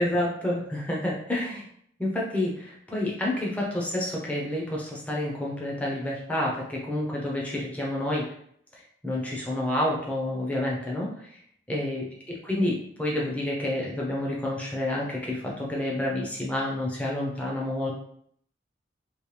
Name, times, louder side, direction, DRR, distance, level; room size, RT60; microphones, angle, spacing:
voice 1, 0.0-1.6 2.0-8.3 8.7-11.3 11.7-17.9, left 1 dB, 10° left, -3 dB, 0.8 m, -29 dB
3.1 x 3.0 x 3.3 m, 0.67 s
head